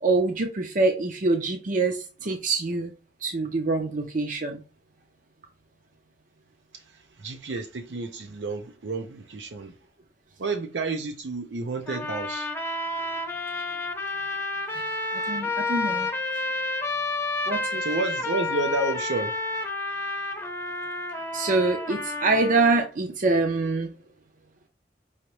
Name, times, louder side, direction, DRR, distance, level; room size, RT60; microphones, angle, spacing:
voice 1, 0.0-2.9 3.2-4.6 14.8-14.9 15.1-16.1 17.5-17.8 21.3-23.9, right 3 dB, 50° right, 0.6 m, -25 dB
voice 2, 7.2-9.7 10.4-12.5 17.8-19.3, right 3 dB, 85° right, 0.6 m, -30 dB
sound 1, 11.9-22.9, left 2 dB, 15° left, 0.7 m, -30 dB
5.6 x 2.9 x 3.1 m
head